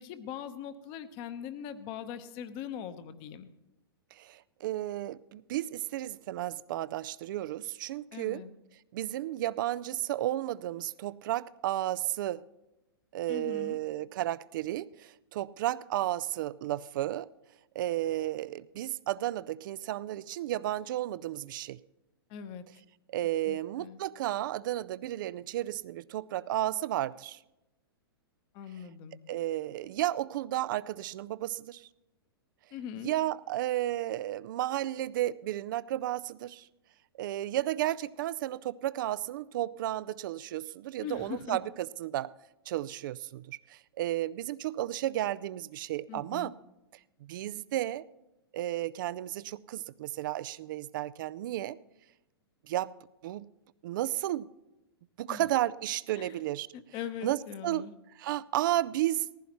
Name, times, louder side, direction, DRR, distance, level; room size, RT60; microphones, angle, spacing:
voice 1, 0.0-3.5 8.1-8.5 13.3-13.8 22.3-22.6 23.5-24.0 28.5-29.2 32.7-33.1 41.0-41.6 46.1-46.5 55.3-55.5 56.2-56.4 56.7-57.9, left 8 dB, 40° left, 1.1 m, -41 dB
voice 2, 4.2-8.4 8.9-12.4 13.1-17.3 17.7-21.8 23.1-27.4 29.3-31.9 33.0-36.7 37.2-42.3 42.7-46.6 47.2-48.0 48.5-51.8 52.7-52.9 53.2-53.5 53.8-54.5 55.2-56.7 57.2-57.9 58.2-59.3, right 14 dB, 55° right, 0.5 m, -33 dB
19.0 x 15.0 x 3.1 m
hypercardioid pair, 110°, 13 cm